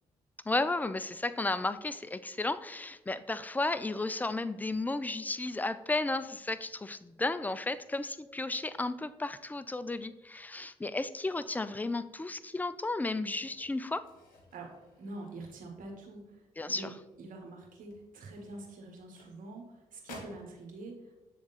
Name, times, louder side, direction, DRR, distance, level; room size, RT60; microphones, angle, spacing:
voice 1, 0.5-14.1 16.6-16.9, left 2 dB, 10° left, 14 dB, 0.4 m, -33 dB
sound 1, 13.4-16.0 16.4-16.7 17.0-17.2 17.8-19.7 20.0-20.5, left 2 dB, 75° left, 1.3 m, -54 dB
voice 2, 14.5-16.4 16.7-16.9 17.2-20.9, right 2 dB, 65° right, 1 dB, 1.3 m, -45 dB
7.6 x 3.5 x 4.1 m, 1.1 s
hypercardioid pair, 45°, 15 cm